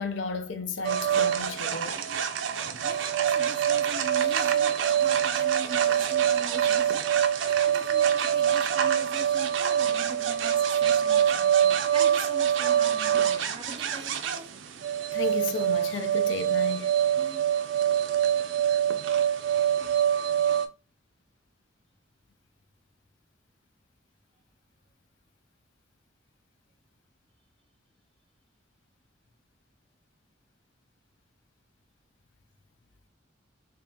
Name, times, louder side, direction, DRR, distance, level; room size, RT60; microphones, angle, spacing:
voice 1, 0.0-2.0 15.1-17.0, left 4 dB, 75° left, 0.5 m, -33 dB
sound 1, 0.8-20.7, right 9 dB, 85° right, 0.4 m, -25 dB
voice 2, 2.8-7.1 7.4-14.5 17.2-17.4 19.8-19.9, right 3 dB, 25° right, 0.5 m, -42 dB
3.6 x 2.8 x 2.7 m
head